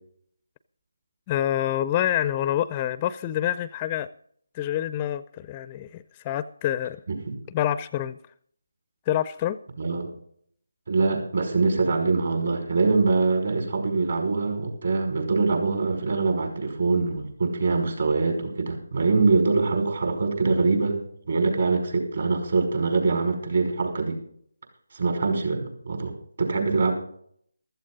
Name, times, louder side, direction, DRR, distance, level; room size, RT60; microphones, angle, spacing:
voice 1, 1.3-4.1 4.5-7.0 7.5-8.2 9.1-9.6, left 11 dB, 20° left, 0.4 m, -27 dB
voice 2, 9.8-10.1 10.9-21.0 21.3-24.2 24.9-26.9, right 3 dB, 55° right, 5.3 m, -24 dB
15.0 x 14.0 x 4.0 m
figure-of-eight pair, 155°, 0 cm